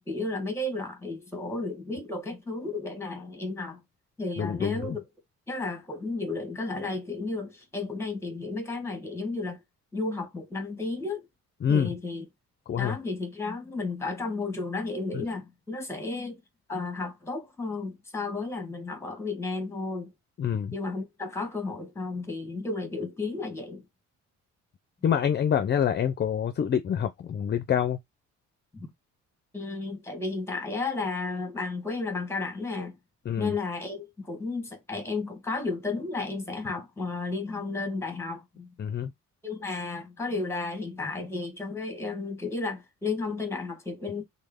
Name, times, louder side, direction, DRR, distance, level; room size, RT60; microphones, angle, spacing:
voice 1, 0.1-3.8 4.2-5.0 5.5-9.6 9.9-11.3 11.7-12.2 12.7-16.4 16.7-20.1 20.7-23.8 28.7-28.9 29.5-33.0 33.4-38.7 39.4-44.2, left 3 dB, 10° left, 1.2 m, -33 dB
voice 2, 4.4-5.0 11.6-11.9 12.7-13.0 15.1-15.2 20.4-20.7 25.0-28.0 33.3-33.5 38.8-39.1, left 8 dB, 35° left, 0.5 m, -26 dB
3.1 x 2.1 x 3.5 m
cardioid pair, 90°, 30 cm